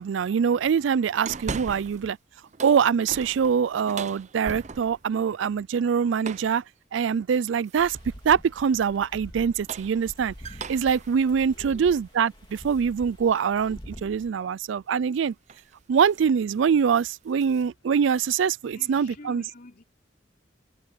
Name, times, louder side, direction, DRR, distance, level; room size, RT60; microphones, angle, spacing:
voice 1, 0.0-2.2 2.6-6.6 6.9-8.0 8.2-10.3 10.7-15.3 15.9-19.4, right 7 dB, 85° right, 0.4 m, -24 dB
sound 1, 1.3-2.1 2.4-5.1 6.2-6.6 7.7-8.1 9.4-12.8 13.3-13.4 14.9-15.2 15.5-15.7 16.1-16.3 16.6-17.7, right 4 dB, 40° right, 0.6 m, -40 dB
sound 2, 7.8-14.3, equal, 25° left, 2.0 m, -45 dB
voice 2, 11.5-12.1 18.7-19.8, left 2 dB, 50° left, 3.5 m, -48 dB
sound 3, 13.8-19.3, left 1 dB, 75° left, 6.6 m, -71 dB
head